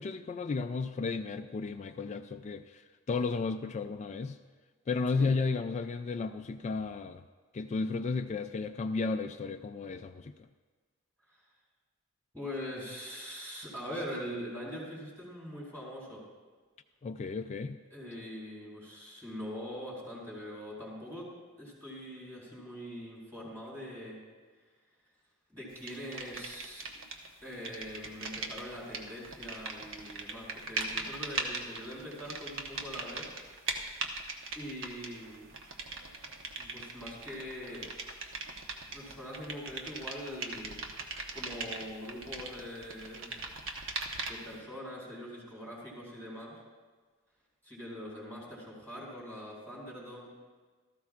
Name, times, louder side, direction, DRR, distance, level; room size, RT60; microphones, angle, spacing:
voice 1, 0.0-4.4 4.9-7.2 7.5-10.3 17.0-17.8, left 4 dB, 30° left, 6 dB, 0.3 m, -33 dB
voice 2, 12.3-16.2 17.9-21.3 21.6-24.2 25.5-26.9 27.4-33.3 34.5-35.6 36.6-37.9 38.9-43.4 44.3-46.6 47.6-50.3, equal, 10° right, -7 dB, 3.9 m, -43 dB
sound 1, 25.9-27.3 27.5-44.6, right 3 dB, 65° right, 1.2 m, -40 dB
17.0 x 13.5 x 2.5 m, 1.4 s
head